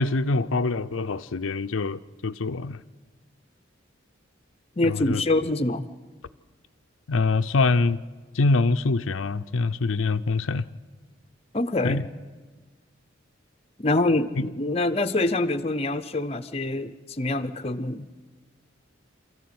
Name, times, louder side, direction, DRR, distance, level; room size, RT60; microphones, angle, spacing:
voice 1, 0.0-2.8 4.8-5.2 7.1-8.0 8.3-10.6 11.8-12.0 14.4-14.5, left 3 dB, 90° left, 0.6 m, -24 dB
voice 2, 4.8-5.9 11.5-12.0 13.8-18.1, left 2 dB, 30° left, 0.7 m, -25 dB
27.5 x 14.0 x 9.4 m
head